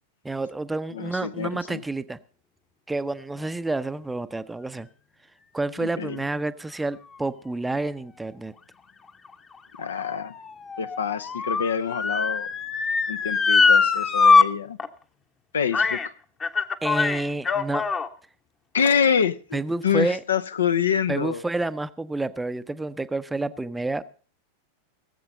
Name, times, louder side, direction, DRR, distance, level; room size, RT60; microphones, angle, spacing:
voice 1, 0.2-2.2 2.9-4.9 5.5-8.5 16.8-17.9 19.5-20.2 21.1-24.0, right 2 dB, 5° right, 13 dB, 0.6 m, -29 dB
voice 2, 0.9-1.8 5.8-6.2 9.8-10.3 10.8-12.5 13.1-14.8 15.5-16.1 18.7-21.4, left 7 dB, 70° left, 12 dB, 0.6 m, -26 dB
Motor vehicle (road) / Siren, 9.2-14.4 14.8-14.9 15.7-16.1 16.4-18.1 18.8-18.9, left 4 dB, 20° left, 0.9 m, -22 dB
18.0 x 7.8 x 5.2 m, 0.40 s
figure-of-eight pair, 90°, 0 cm